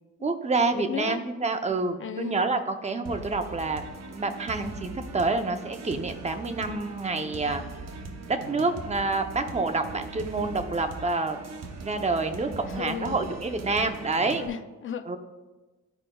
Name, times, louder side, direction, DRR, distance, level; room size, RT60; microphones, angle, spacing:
voice 1, 0.2-3.8 4.1-7.6 8.3-11.6 11.8-14.4 15.1-15.2, right 3 dB, 20° right, 7 dB, 0.6 m, -28 dB
voice 2, 0.7-1.3 2.0-2.5 12.7-13.3 14.3-15.2, left 8 dB, 40° left, 10 dB, 0.5 m, -35 dB
sound 1, 3.1-14.5, right 3 dB, 55° right, 0.8 m, -40 dB
14.0 x 5.0 x 2.3 m, 1.2 s
cardioid pair, 105°, 32 cm